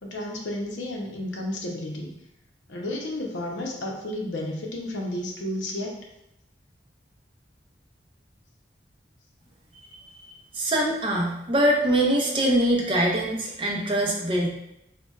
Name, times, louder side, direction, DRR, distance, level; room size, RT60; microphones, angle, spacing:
voice 1, 0.0-2.1 2.7-5.9, left 1 dB, 80° left, 0 dB, 0.6 m, -32 dB
voice 2, 10.5-14.5, right 1 dB, 30° right, 0 dB, 0.4 m, -23 dB
4.0 x 2.1 x 2.3 m, 0.83 s
head